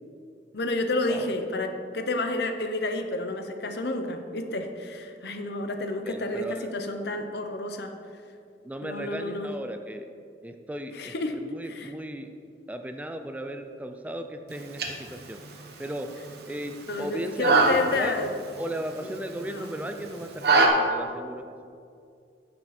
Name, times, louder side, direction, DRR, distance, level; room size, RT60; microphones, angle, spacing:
voice 1, 0.5-7.9 8.8-9.5 10.9-11.9 16.9-18.3 19.5-19.7, left 2 dB, 65° left, 6 dB, 0.8 m, -30 dB
voice 2, 6.0-6.7 8.6-10.1 10.4-12.3 12.7-15.4 15.8-16.1 16.5-18.2 18.6-21.5, right 1 dB, 10° right, 6 dB, 0.4 m, -36 dB
sound 1, 14.5-20.7, right 3 dB, 60° right, 1.1 m, -27 dB
10.0 x 6.7 x 4.2 m, 2.4 s
head